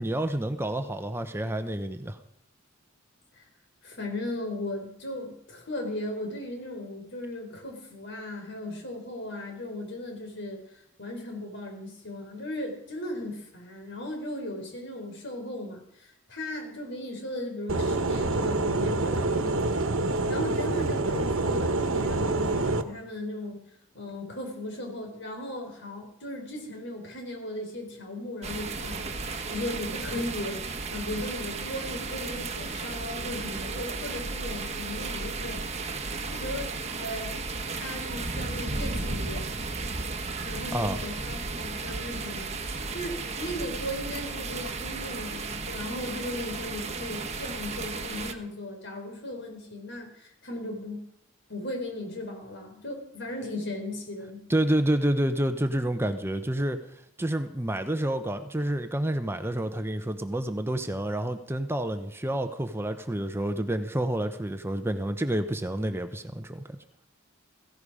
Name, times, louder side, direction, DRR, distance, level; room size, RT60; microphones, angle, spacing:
voice 1, 0.0-2.2 40.7-41.0 54.5-56.8 57.2-66.8, right 1 dB, 10° right, 8 dB, 0.8 m, -29 dB
voice 2, 3.8-10.6 11.0-19.6 20.3-23.6 23.9-35.6 36.3-37.4 37.7-39.5 40.5-42.5 42.9-51.0 51.5-54.4, left 1 dB, 60° left, 2 dB, 4.6 m, -37 dB
sound 1, 17.7-22.8, right 2 dB, 80° right, 1.2 m, -26 dB
sound 2, 28.4-48.3, right 3 dB, 35° right, 1.2 m, -34 dB
16.5 x 16.0 x 5.0 m, 0.74 s
head